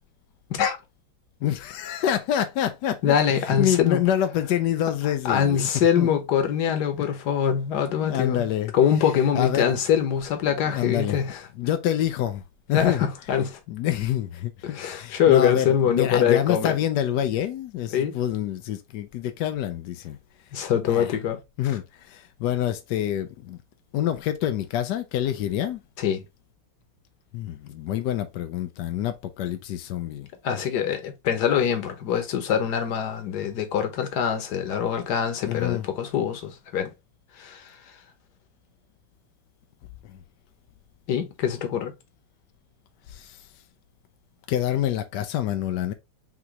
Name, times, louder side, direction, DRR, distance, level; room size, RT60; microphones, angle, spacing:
voice 1, 1.4-3.2 3.4-6.1 8.0-8.7 9.3-9.7 10.7-11.2 11.6-12.4 12.7-13.1 13.7-20.2 20.9-21.2 21.6-23.6 23.9-25.8 27.3-30.3 35.4-35.9 40.1-40.2 43.1-43.4 44.5-45.9, left 11 dB, 80° left, 0.9 m, -27 dB
voice 2, 3.0-4.0 5.3-8.5 8.7-11.4 12.7-13.6 14.6-16.7 17.9-18.2 20.5-21.4 26.0-26.2 30.4-36.9 37.4-37.6 41.1-41.9, left 8 dB, 55° left, 1.3 m, -23 dB
5.9 x 2.9 x 2.9 m
omnidirectional pair, 2.4 m